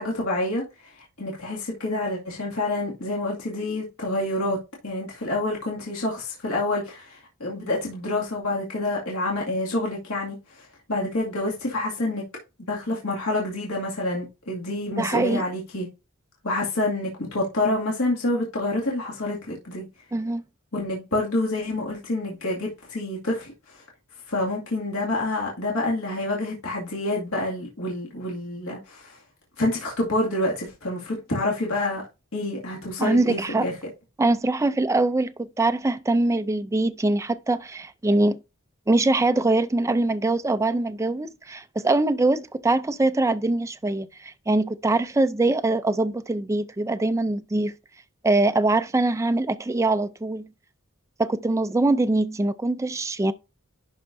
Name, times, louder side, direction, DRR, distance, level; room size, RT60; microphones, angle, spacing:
voice 1, 0.0-4.6 4.8-12.2 12.7-15.9 16.4-19.9 20.7-23.8 24.3-29.2 29.6-32.0 32.3-33.7, left 2 dB, 75° left, 2.2 m, -28 dB
voice 2, 15.0-15.4 20.1-20.4 33.0-33.7 34.2-38.4 38.9-47.7 48.2-50.5 51.2-53.3, right 2 dB, 15° right, 0.4 m, -23 dB
11.0 x 4.5 x 2.6 m
head